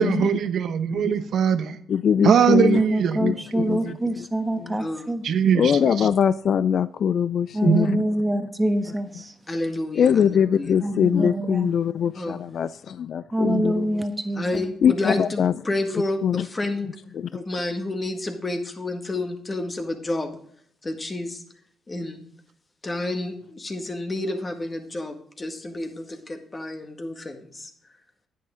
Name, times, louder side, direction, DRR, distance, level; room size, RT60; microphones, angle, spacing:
voice 1, 0.0-1.8 2.2-3.2 3.6-4.0 5.2-5.9 7.6-8.0, right 8 dB, 65° right, 0.9 m, -21 dB
voice 2, 1.9-2.8 3.2-3.8 4.1-4.3 4.6-4.8 5.5-7.9 10.0-14.0 14.8-15.5 16.2-16.5 17.1-17.3, left 8 dB, 60° left, 0.3 m, -22 dB
voice 3, 2.7-5.2 7.5-9.3 10.8-11.7 13.3-14.6, right 1 dB, 15° right, 1.4 m, -26 dB
voice 4, 4.8-5.1 9.5-10.7 12.1-12.4 14.4-16.9 17.3-20.4 20.8-21.4 21.9-22.2 22.8-27.7, left 2 dB, 25° left, 1.9 m, -30 dB
10.5 x 9.3 x 3.8 m
supercardioid pair, 70°, 0 cm